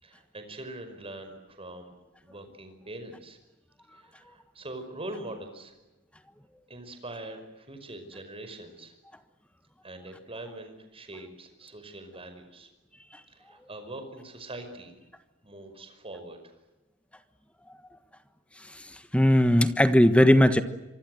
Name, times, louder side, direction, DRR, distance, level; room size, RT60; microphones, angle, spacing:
voice 1, 0.0-2.0 2.2-3.4 3.9-5.7 6.7-8.9 9.8-12.7 13.3-14.9 15.4-16.6, right 1 dB, 25° right, 7 dB, 5.3 m, -43 dB
voice 2, 18.7-20.6, equal, 5° left, 10 dB, 1.4 m, -19 dB
26.0 x 24.5 x 7.9 m, 1.0 s
head